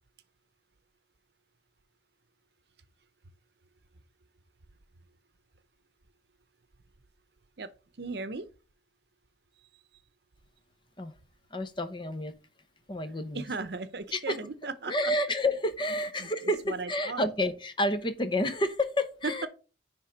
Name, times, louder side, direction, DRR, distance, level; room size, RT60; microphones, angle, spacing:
voice 1, 8.0-8.5 13.3-15.1 16.2-16.3 16.7-17.3, right 4 dB, 65° right, 0.8 m, -37 dB
voice 2, 11.5-12.3 12.9-13.4 14.1-14.4 14.9-16.6 16.9-19.5, left 1 dB, 25° left, 0.8 m, -29 dB
10.0 x 3.6 x 5.1 m
head